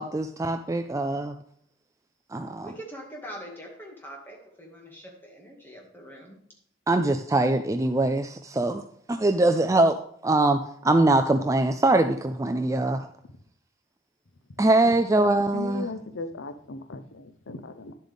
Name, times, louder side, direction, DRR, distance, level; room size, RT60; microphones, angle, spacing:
voice 1, 0.0-1.3 2.3-2.7 6.9-8.8 9.1-10.0 10.2-13.1 14.6-15.9, right 2 dB, 15° right, 7 dB, 0.3 m, -23 dB
voice 2, 2.6-6.4, equal, 10° left, -1 dB, 2.0 m, -43 dB
voice 3, 15.5-17.9, left 3 dB, 75° left, 10 dB, 0.7 m, -37 dB
11.0 x 7.5 x 3.5 m, 0.67 s
head